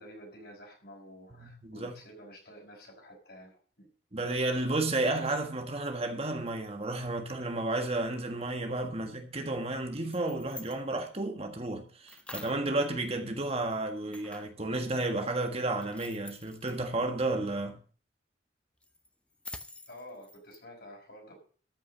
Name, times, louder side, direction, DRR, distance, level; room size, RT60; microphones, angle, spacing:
voice 1, 0.0-3.9 19.9-21.3, equal, 60° left, 5.3 m, -50 dB
voice 2, 1.4-1.9 4.1-17.8, right 2 dB, 35° right, 1.6 m, -32 dB
sound 1, 9.9-10.8 12.1-12.7 14.1-14.6 15.7-16.8 18.8-20.6, left 2 dB, 5° left, 0.7 m, -47 dB
13.5 x 6.2 x 7.4 m
head